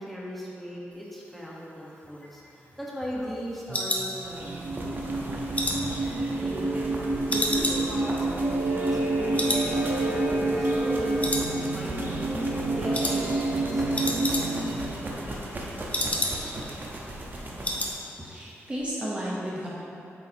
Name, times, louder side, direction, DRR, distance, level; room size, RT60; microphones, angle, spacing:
voice 1, 0.0-4.6 6.3-6.9 7.2-10.1 10.5-11.3 11.6-12.3 12.7-14.8, equal, ahead, -6 dB, 1.4 m, -38 dB
sound 1, 2.0-4.8 5.1-6.9 7.3-9.1 9.3-9.7 10.0-10.1 10.5-10.9 11.2-12.0 12.3-12.5 12.9-13.2 13.5-13.6 13.8-14.8 15.1-16.7 17.0-17.1 17.3-18.0 18.2-18.5 18.8-18.9, left 1 dB, 25° left, 0.9 m, -31 dB
sound 2, 3.7-15.1, right 2 dB, 65° right, 0.9 m, -28 dB
sound 3, 4.2-17.9, right 1 dB, 40° right, 1.0 m, -37 dB
voice 2, 18.2-19.7, equal, 25° right, -7 dB, 1.1 m, -33 dB
8.1 x 4.7 x 3.0 m, 2.9 s
cardioid pair, 65°, 5 cm